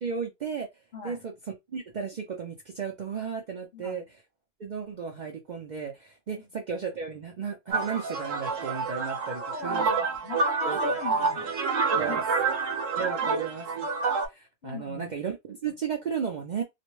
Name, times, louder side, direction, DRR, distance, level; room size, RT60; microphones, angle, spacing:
voice 1, 0.0-0.7 1.0-4.0 4.6-9.9 10.6-10.8 11.9-12.2 13.0-13.9 14.3-16.6, right 6 dB, 60° right, 0.5 m, -34 dB
voice 2, 0.9-1.2 3.7-4.0 6.4-6.5 9.4-11.5 11.9-12.2 13.2-13.4 14.6-15.1, left 5 dB, 60° left, 0.8 m, -40 dB
sound 1, 7.7-14.3, right 4 dB, 85° right, 1.1 m, -28 dB
2.4 x 2.1 x 3.0 m
omnidirectional pair, 1.3 m